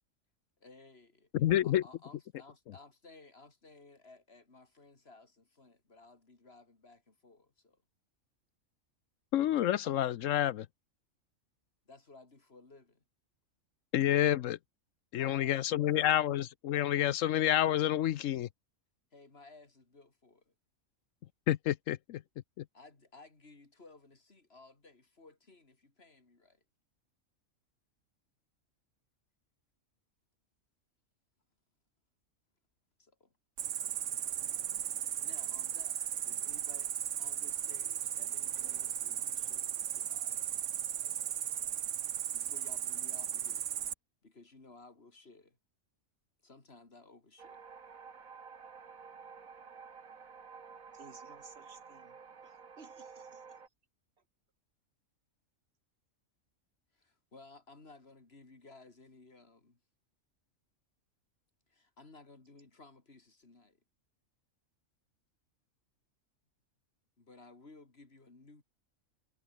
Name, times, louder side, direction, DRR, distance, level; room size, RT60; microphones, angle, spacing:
voice 1, 0.6-1.3 1.6-7.8 11.9-13.0 15.1-16.2 19.1-20.5 22.7-26.6 33.0-33.3 35.2-36.9 37.2-40.7 42.3-43.7 44.2-45.6 46.4-47.7 56.9-59.8 61.7-63.8 67.2-68.6, left 3 dB, 50° left, 3.5 m, -57 dB
voice 2, 1.3-1.8 9.3-10.7 13.9-14.6 15.1-18.5 21.5-22.2 22.6-22.7, left 12 dB, 75° left, 1.0 m, -29 dB
Cricket, 33.6-43.9, right 10 dB, 65° right, 1.2 m, -36 dB
sound 1, 47.4-53.7, right 5 dB, 85° right, 2.3 m, -51 dB
voice 3, 50.9-53.4, right 4 dB, 50° right, 2.3 m, -57 dB
omnidirectional pair, 1.4 m